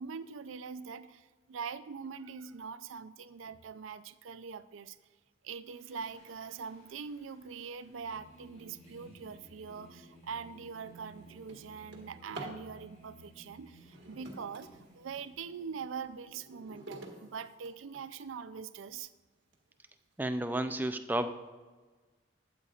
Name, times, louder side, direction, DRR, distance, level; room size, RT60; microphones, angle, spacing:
voice 1, 0.0-5.0 5.4-19.1, right 6 dB, 90° right, 14 dB, 0.4 m, -43 dB
Singing, 5.7-16.1, right 1 dB, 40° left, 2.2 m, -57 dB
Drawer open or close, 10.2-10.3 10.7-12.7 13.7-15.3 15.9-18.3 18.9-19.0 19.5-19.6 20.0-20.4, right 2 dB, 60° right, 1.5 m, -49 dB
voice 2, 20.2-21.3, right 1 dB, 10° right, 8 dB, 0.4 m, -32 dB
12.5 x 8.3 x 2.4 m, 1.3 s
head